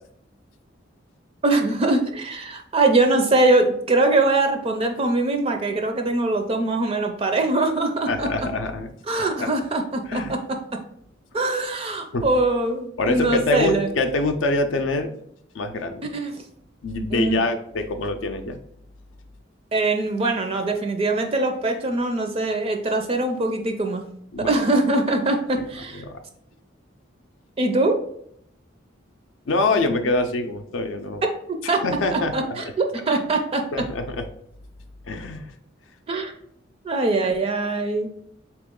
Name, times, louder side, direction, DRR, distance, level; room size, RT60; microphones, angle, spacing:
voice 1, 1.4-8.5 9.1-10.4 11.3-13.9 16.0-16.3 17.1-17.4 19.7-24.0 24.5-26.0 27.6-28.0 31.7-31.8 32.1-33.6 36.1-36.3 36.8-38.1, right 2 dB, 30° right, 4 dB, 0.4 m, -22 dB
voice 2, 8.1-9.5 10.1-10.4 12.1-12.3 13.0-15.1 15.5-16.1 16.8-18.6 24.3-24.8 25.6-25.7 25.9-26.2 29.5-31.2 31.6-32.7 33.1-33.3 33.7-34.3 35.1-35.5, left 2 dB, 75° left, 6 dB, 0.5 m, -25 dB
3.7 x 3.0 x 3.6 m, 0.71 s
head